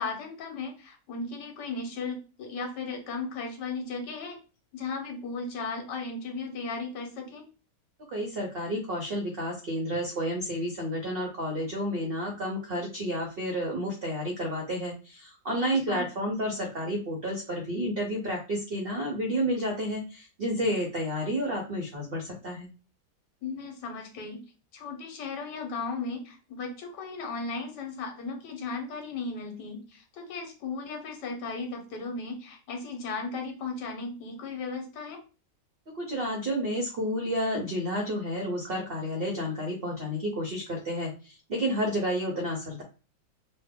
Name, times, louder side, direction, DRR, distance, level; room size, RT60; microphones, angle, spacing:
voice 1, 0.0-4.4 4.7-7.5 15.6-16.0 23.4-24.4 24.7-35.2, left 4 dB, 80° left, 4 dB, 1.5 m, -36 dB
voice 2, 8.1-22.7 35.9-42.8, equal, 65° right, 1 dB, 0.5 m, -31 dB
3.1 x 2.1 x 3.5 m, 0.33 s
omnidirectional pair, 1.8 m